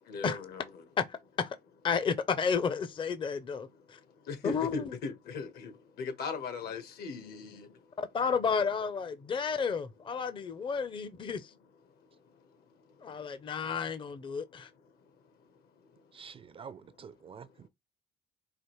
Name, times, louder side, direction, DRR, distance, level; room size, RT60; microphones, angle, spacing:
voice 1, 0.1-0.6 4.3-5.7 6.0-7.7, left 4 dB, 70° left, 1.2 m, -38 dB
voice 2, 1.0-1.6 1.8-4.0 4.4-4.9 8.0-11.5 13.0-14.7, left 6 dB, 30° left, 0.5 m, -32 dB
voice 3, 16.1-17.7, right 6 dB, 35° right, 0.4 m, -48 dB
5.0 x 2.5 x 3.0 m
cardioid pair, 110°, 17 cm